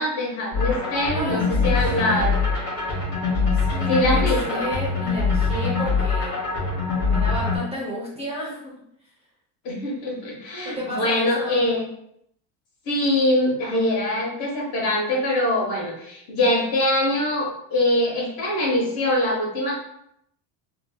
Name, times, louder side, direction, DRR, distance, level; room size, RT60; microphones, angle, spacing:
voice 1, 0.0-2.4 3.9-4.7 9.6-11.9 12.9-19.8, left 1 dB, 80° left, -3 dB, 1.3 m, -23 dB
sound 1, 0.5-7.6, left 4 dB, 30° left, 1.2 m, -23 dB
voice 2, 1.1-1.8 2.0-2.5 3.7-6.3 7.1-8.8 10.6-11.6, equal, 15° right, -5 dB, 0.6 m, -32 dB
3.0 x 2.7 x 2.2 m, 0.75 s
supercardioid pair, 135°, 49 cm